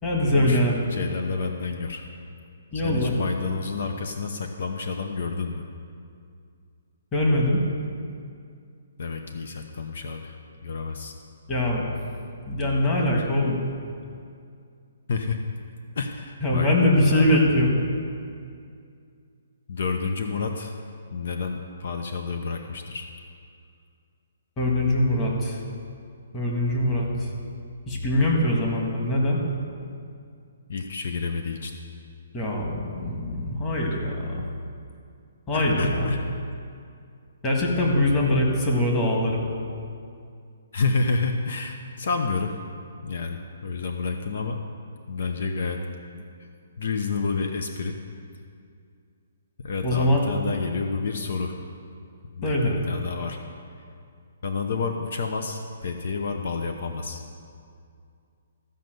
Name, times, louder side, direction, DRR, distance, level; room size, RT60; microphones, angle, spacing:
voice 1, 0.0-0.9 2.7-3.1 7.1-7.6 11.5-11.8 12.5-13.6 16.4-17.7 24.6-25.6 26.3-27.3 27.9-29.4 32.3-34.4 35.5-36.1 37.4-39.4 49.8-50.2 52.4-52.8, left 1 dB, 15° left, -1 dB, 1.6 m, -22 dB
voice 2, 0.9-2.2 2.7-5.6 9.0-11.2 15.1-15.4 16.0-17.4 19.7-20.8 21.1-23.1 30.7-31.7 35.5-36.2 40.7-42.6 43.0-44.6 45.1-45.8 46.1-46.5 46.8-47.9 49.6-51.6 52.3-53.4 54.4-57.2, left 4 dB, 60° left, 5 dB, 0.8 m, -29 dB
14.5 x 5.4 x 7.8 m, 2.3 s
hypercardioid pair, 165°, 0 cm